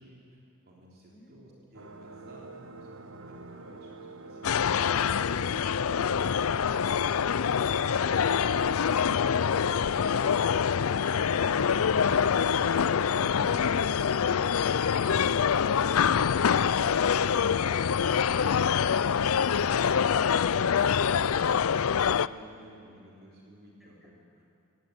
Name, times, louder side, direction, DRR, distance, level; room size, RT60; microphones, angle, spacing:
voice 1, 0.0-6.3 6.6-7.1 21.0-24.4, equal, 45° right, -3 dB, 3.5 m, -55 dB
voice 2, 1.1-1.4 10.6-18.8 19.2-20.6, equal, ahead, -5 dB, 7.8 m, -52 dB
sound 1, 1.7-19.3, right 2 dB, 65° right, 1.4 m, -47 dB
sound 2, 4.4-22.3, left 7 dB, 70° left, 0.5 m, -25 dB
25.0 x 18.5 x 9.8 m, 2.6 s
head